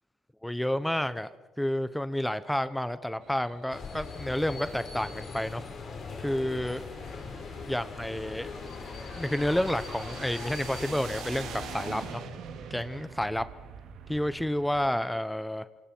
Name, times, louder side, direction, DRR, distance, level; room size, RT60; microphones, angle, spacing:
voice 1, 0.4-1.3 1.6-5.6 6.2-6.8 7.7-8.5 9.1-12.2 12.7-13.5 14.1-15.7, left 1 dB, 5° left, 13 dB, 0.9 m, -30 dB
sound 1, 3.2-14.9, right 7 dB, 85° right, 2.4 m, -46 dB
sound 2, 3.7-12.1, left 4 dB, 55° left, 4.5 m, -40 dB
28.5 x 26.5 x 4.6 m, 1.2 s
cardioid pair, 90°, 0 cm